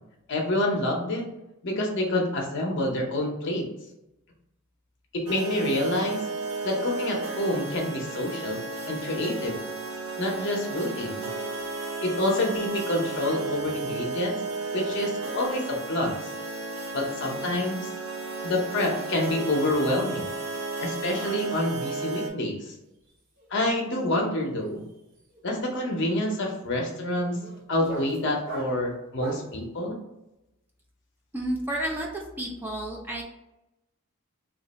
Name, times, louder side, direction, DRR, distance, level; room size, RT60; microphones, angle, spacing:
voice 1, 0.3-1.3 1.6-3.7 5.1-6.2 6.6-8.6 8.9-9.6 10.2-11.3 12.0-14.4 14.7-16.3 16.9-17.9 18.4-20.3 20.8-22.7 23.5-24.8 25.4-27.4 27.7-30.0, left 1 dB, 55° left, 0 dB, 0.7 m, -27 dB
sound 1, 5.3-22.3, right 3 dB, 90° right, 0.8 m, -33 dB
Dog Whine and Bark, 22.8-23.1 23.4-29.6, right 1 dB, 60° right, 1.0 m, -42 dB
voice 2, 31.3-33.2, right 1 dB, 10° right, -1 dB, 0.4 m, -31 dB
2.8 x 2.5 x 4.0 m, 0.92 s
head